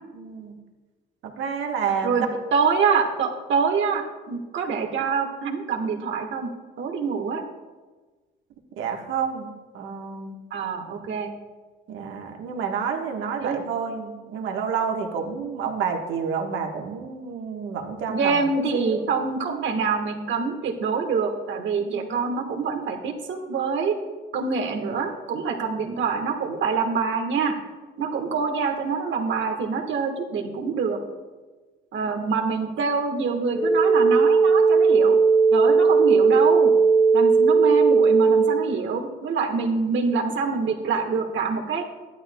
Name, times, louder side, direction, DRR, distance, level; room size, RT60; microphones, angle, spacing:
voice 1, 0.1-0.6 1.2-2.1 8.8-10.4 11.9-18.4 18.7-19.0 21.8-22.2 28.0-28.3 31.9-32.1, right 6 dB, 85° right, 2 dB, 1.3 m, -30 dB
voice 2, 2.0-6.5 6.8-7.4 10.5-11.3 13.4-13.6 18.1-23.9 24.3-27.5 28.0-31.0 31.9-35.2 35.5-36.7 37.1-41.9, right 5 dB, 70° right, 3 dB, 1.4 m, -25 dB
sound 1, 33.5-38.5, right 4 dB, 5° left, 1.1 m, -17 dB
13.0 x 11.0 x 2.2 m, 1.3 s
cardioid pair, 90°, 20 cm